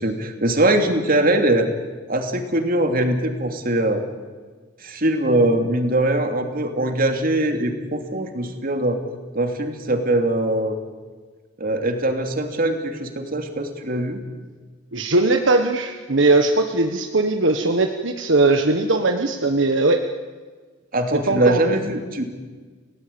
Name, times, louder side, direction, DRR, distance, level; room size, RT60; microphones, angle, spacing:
voice 1, 0.0-1.7 2.1-4.0 4.8-9.0 9.3-10.8 11.6-14.2 20.9-22.2, right 1 dB, 50° right, 5 dB, 3.0 m, -21 dB
voice 2, 14.9-20.0 21.3-21.8, right 2 dB, 75° right, 5 dB, 1.3 m, -19 dB
29.0 x 18.5 x 8.8 m, 1.5 s
head